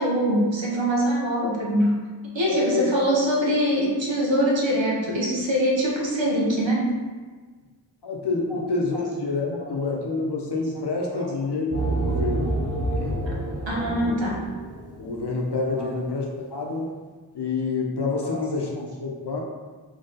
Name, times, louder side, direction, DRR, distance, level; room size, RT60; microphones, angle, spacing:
voice 1, 0.0-2.0 2.3-7.0 8.5-8.7 8.9-9.1 9.6-9.8 11.1-11.3 11.8-11.9 13.2-13.4 13.7-14.4 15.8-15.9 18.2-18.5, equal, 85° right, -3 dB, 1.0 m, -23 dB
voice 2, 2.5-2.9 8.0-12.6 12.9-13.2 14.0-14.3 15.0-16.9 17.3-19.4, left 3 dB, 65° left, 0 dB, 0.8 m, -28 dB
sound 1, 11.7-15.1, right 2 dB, 35° right, 0.8 m, -28 dB
4.0 x 3.0 x 3.9 m, 1.4 s
wide cardioid pair, 80°, 44 cm